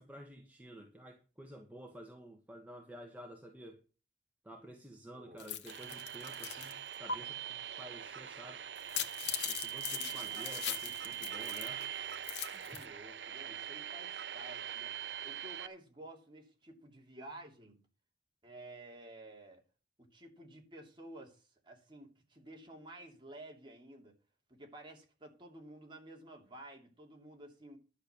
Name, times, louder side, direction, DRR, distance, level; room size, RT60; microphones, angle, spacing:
voice 1, 0.0-3.8 4.4-8.6 9.4-11.8 12.5-12.6, right 1 dB, 10° right, 1.5 m, -51 dB
voice 2, 5.1-5.6 9.9-11.6 12.7-14.9 15.2-17.8 18.4-19.6 20.0-24.1 24.5-27.8, right 1 dB, 30° right, 3.0 m, -53 dB
sound 1, 5.4-6.7 7.1-7.2 8.8-11.8 12.1-12.8, left 8 dB, 85° left, 1.2 m, -40 dB
sound 2, 5.7-15.7, right 10 dB, 70° right, 0.6 m, -42 dB
11.5 x 6.8 x 6.8 m
head